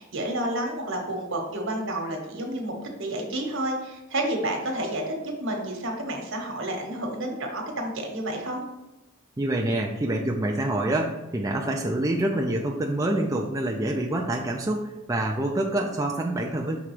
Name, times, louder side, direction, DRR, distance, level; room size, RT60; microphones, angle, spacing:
voice 1, 0.0-8.6, right 1 dB, 65° right, 2 dB, 1.2 m, -30 dB
voice 2, 9.4-16.8, right 1 dB, 15° right, 0 dB, 0.4 m, -26 dB
5.9 x 3.6 x 4.9 m, 1.0 s
head